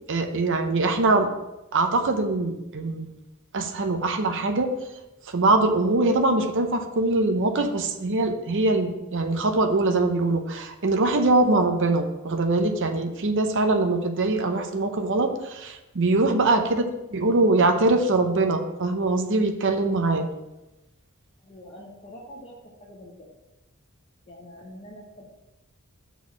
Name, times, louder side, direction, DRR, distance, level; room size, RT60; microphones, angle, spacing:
voice 1, 0.1-1.3 1.7-3.1 3.5-4.7 5.3-16.8 17.1-20.3, right 2 dB, 55° right, 5 dB, 0.7 m, -23 dB
voice 2, 21.4-22.5 22.8-23.3 24.3-25.2, equal, 30° left, -5 dB, 1.1 m, -44 dB
6.3 x 4.6 x 5.8 m, 0.97 s
head